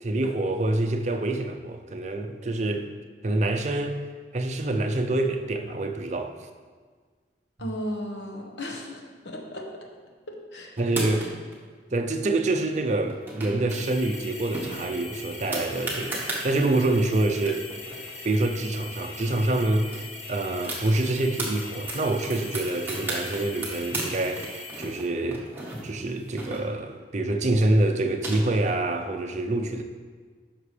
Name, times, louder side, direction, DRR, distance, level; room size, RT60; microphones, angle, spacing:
voice 1, 0.0-2.9 3.2-4.0 4.3-6.4 10.8-11.3 11.9-17.6 18.2-25.4 25.8-29.8, right 2 dB, 40° right, 5 dB, 0.6 m, -26 dB
voice 2, 7.6-9.7 10.3-10.7, equal, 90° left, 0 dB, 1.2 m, -35 dB
sound 1, 10.8-11.6 13.0-13.8 14.1-14.2 14.5-16.4 17.1-17.2 17.4-19.2 19.5-19.6 19.9-21.5 21.9-24.1 24.4-27.0 27.8-28.8, right 2 dB, 10° right, 1.3 m, -35 dB
sound 2, 13.7-25.1, left 3 dB, 40° left, 1.0 m, -41 dB
9.9 x 6.0 x 3.3 m, 1.5 s
head